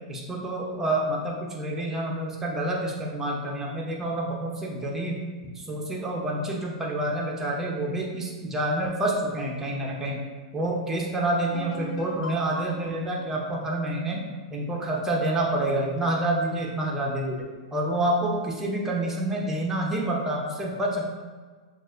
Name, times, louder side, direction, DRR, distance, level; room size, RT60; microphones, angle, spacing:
voice 1, 0.1-5.2 5.5-10.2 10.5-14.2 14.5-21.0, right 1 dB, 10° right, -2 dB, 0.8 m, -28 dB
sound 1, 11.5-15.1, right 1 dB, 65° left, 0.9 m, -41 dB
6.1 x 2.5 x 2.5 m, 1.5 s
hypercardioid pair, 120°, 3 cm